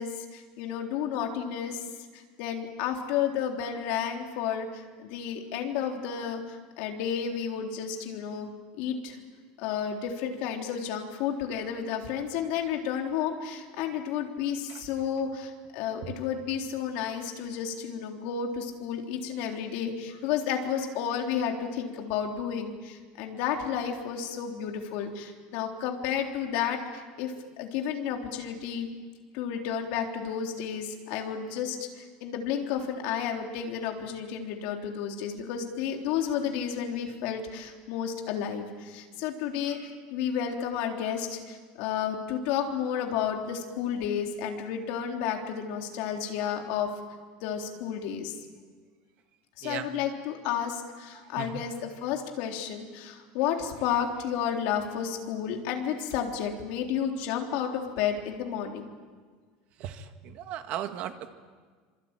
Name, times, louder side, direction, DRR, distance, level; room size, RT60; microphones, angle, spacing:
voice 1, 0.0-1.8 2.1-8.5 8.8-9.2 9.6-28.9 29.3-46.9 47.4-48.3 49.6-58.9, left 8 dB, 55° left, 2 dB, 3.7 m, -32 dB
voice 2, 51.1-51.6 59.8-61.3, right 10 dB, 40° right, 8 dB, 1.7 m, -37 dB
26.0 x 25.0 x 9.1 m, 1.5 s
cardioid pair, 175°, 4 cm